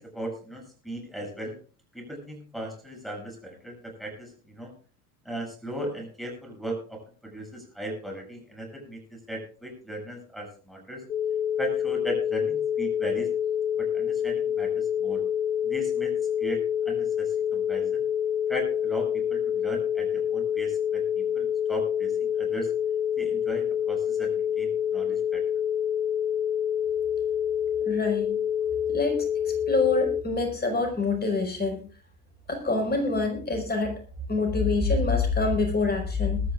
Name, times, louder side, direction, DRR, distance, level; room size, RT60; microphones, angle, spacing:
voice 1, 0.0-1.5 1.9-4.7 5.2-11.0 11.6-13.3 13.8-15.2 15.6-16.1 16.4-16.6 16.9-18.0 18.5-22.7 23.2-25.4, right 1 dB, ahead, 0 dB, 7.7 m, -37 dB
sound 1, 11.1-30.2, left 9 dB, 80° left, 1.0 m, -27 dB
voice 2, 27.8-28.3 28.9-31.8 32.5-33.9 34.3-36.4, left 3 dB, 20° left, 4 dB, 5.3 m, -26 dB
22.0 x 13.0 x 2.5 m, 0.40 s
hypercardioid pair, 80°, 46 cm